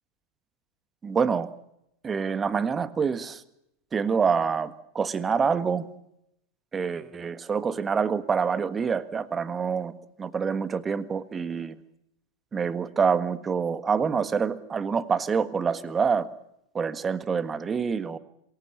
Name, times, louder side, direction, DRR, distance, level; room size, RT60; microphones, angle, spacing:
voice 1, 1.0-1.5 2.0-3.4 3.9-5.9 6.7-11.8 12.5-16.3 16.7-18.2, right 6 dB, 20° right, 14 dB, 1.6 m, -26 dB
27.5 x 21.0 x 7.0 m, 0.80 s
figure-of-eight pair, 90°, 0 cm